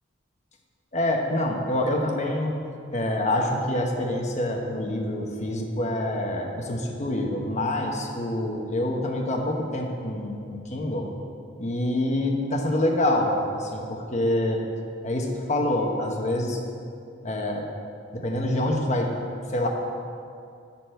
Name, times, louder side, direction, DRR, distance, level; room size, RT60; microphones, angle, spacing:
voice 1, 0.9-2.6 2.9-11.1 11.6-14.6 15.0-16.6 17.2-17.7 18.1-19.1 19.5-19.7, left 1 dB, 35° left, 1 dB, 1.1 m, -26 dB
11.5 x 4.1 x 7.9 m, 2.4 s
head